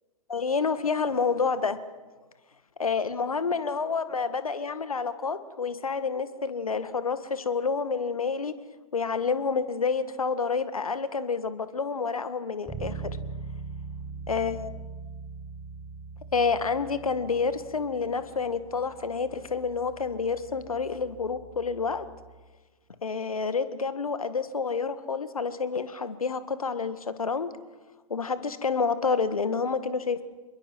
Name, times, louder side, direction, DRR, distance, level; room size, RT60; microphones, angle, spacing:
voice 1, 0.3-1.8 2.8-8.5 8.9-13.2 14.3-14.8 16.3-22.1 23.0-27.5 28.1-30.2, left 5 dB, 75° left, 12 dB, 1.8 m, -28 dB
Bass guitar, 12.7-22.4, right 5 dB, 5° right, 7.1 m, -42 dB
27.5 x 22.5 x 6.2 m, 1.3 s
figure-of-eight pair, 110°, 18 cm